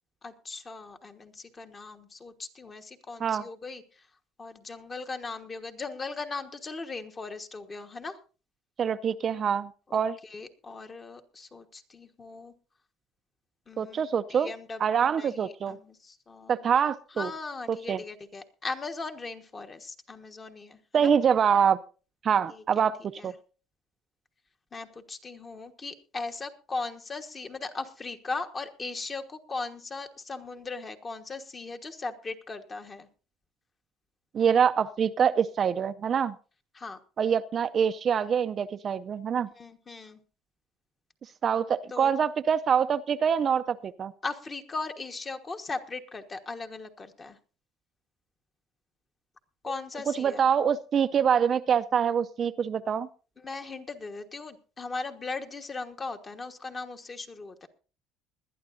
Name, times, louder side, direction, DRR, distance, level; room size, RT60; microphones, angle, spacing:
voice 1, 0.2-4.1 4.4-8.2 9.9-12.5 13.7-16.6 17.1-21.1 22.5-22.9 23.2-23.3 24.7-33.1 36.7-37.0 39.5-40.2 41.9-42.1 44.2-47.4 49.6-50.4 53.4-57.7, left 3 dB, 25° left, 6 dB, 1.3 m, -38 dB
voice 2, 8.8-10.2 13.8-14.5 14.8-15.8 16.5-17.3 17.7-18.0 20.9-21.8 22.2-23.0 23.2-23.3 34.3-36.4 37.2-39.5 41.4-44.1 50.2-53.1, right 7 dB, 40° right, 10 dB, 0.5 m, -25 dB
21.0 x 11.5 x 2.6 m, 0.36 s
cardioid pair, 120°, 0 cm